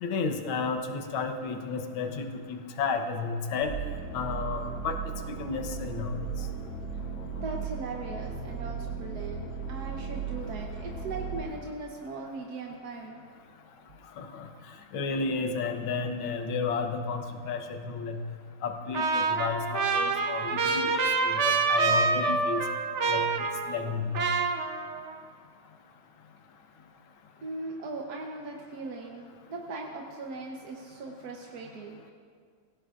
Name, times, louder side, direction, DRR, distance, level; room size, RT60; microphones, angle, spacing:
voice 1, 0.0-3.7 4.1-5.0 5.4-6.2 14.2-14.5 14.9-18.2 18.6-22.7 23.1-23.3 23.7-24.2, left 4 dB, 70° left, 4 dB, 1.8 m, -32 dB
sound 1, 3.6-11.4, right 6 dB, 40° left, 5.6 m, -36 dB
voice 2, 7.4-13.2 27.4-32.1, right 3 dB, 55° right, 0 dB, 1.3 m, -39 dB
Trumpet, 18.9-23.9 24.1-25.2, right 4 dB, 75° right, 0.6 m, -27 dB
25.5 x 17.0 x 2.5 m, 2.1 s
omnidirectional pair, 2.4 m